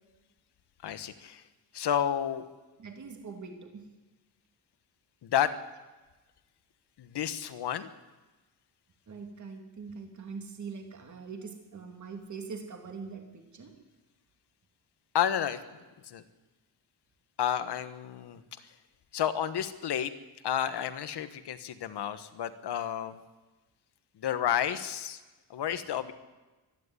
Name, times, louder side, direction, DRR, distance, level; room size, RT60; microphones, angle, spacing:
voice 1, 0.8-1.4 1.7-2.4 5.2-5.5 7.0-7.9 15.1-15.6 16.1-16.2 17.4-18.4 19.1-20.1 20.4-23.2 24.2-25.2 25.5-26.1, left 9 dB, 65° left, 12 dB, 1.4 m, -31 dB
voice 2, 2.8-3.8 9.1-13.7, right 5 dB, 40° right, 4 dB, 2.8 m, -43 dB
25.0 x 11.0 x 9.8 m, 1.2 s
wide cardioid pair, 165°, 42 cm